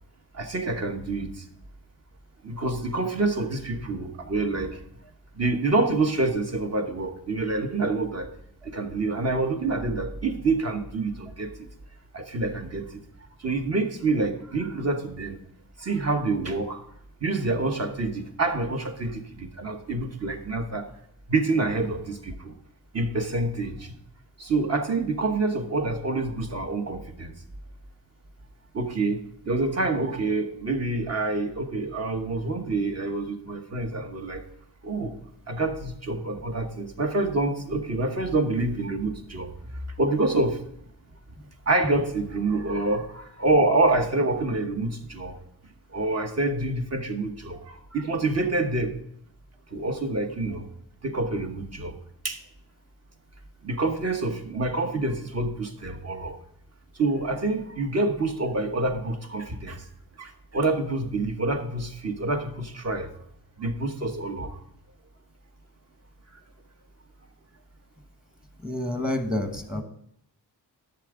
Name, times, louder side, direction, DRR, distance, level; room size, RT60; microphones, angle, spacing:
voice 1, 0.3-1.4 2.4-4.8 5.3-8.3 8.6-11.7 12.1-13.0 13.4-15.4 15.8-16.8 17.2-20.8 21.3-22.5 22.9-23.9 24.4-27.3 28.7-29.2 29.5-34.4 34.8-35.1 35.5-39.5 40.0-40.6 41.7-45.4 45.9-48.9 49.7-50.7 51.0-52.0 52.2-52.4 53.6-56.4 56.9-59.9 60.2-63.1 63.6-64.6, right 2 dB, 40° right, 5 dB, 1.2 m, -27 dB
voice 2, 68.6-69.8, left 1 dB, ahead, 5 dB, 1.1 m, -28 dB
11.5 x 7.0 x 3.8 m, 0.73 s
wide cardioid pair, 125°, 39 cm